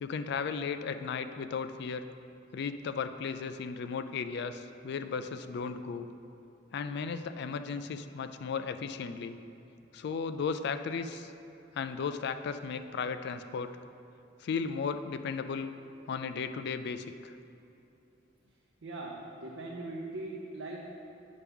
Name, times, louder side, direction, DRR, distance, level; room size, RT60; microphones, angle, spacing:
voice 1, 0.0-2.0 2.5-6.1 6.7-9.4 9.9-11.3 11.7-13.7 14.4-15.7 16.1-17.3, left 5 dB, 60° left, 10 dB, 0.3 m, -35 dB
voice 2, 18.8-20.9, right 2 dB, 85° right, -2 dB, 0.6 m, -40 dB
8.4 x 5.8 x 3.5 m, 2.7 s
head